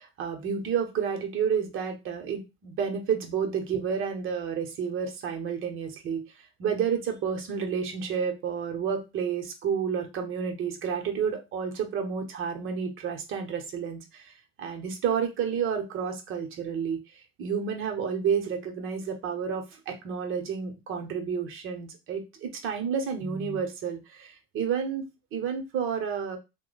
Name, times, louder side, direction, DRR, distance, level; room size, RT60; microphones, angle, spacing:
voice 1, 0.0-6.2 6.6-14.3 14.6-17.0 17.4-25.0 25.3-26.4, right 7 dB, 40° right, 4 dB, 1.0 m, -30 dB
2.9 x 2.2 x 3.9 m, 0.25 s
supercardioid pair, 110°, 31 cm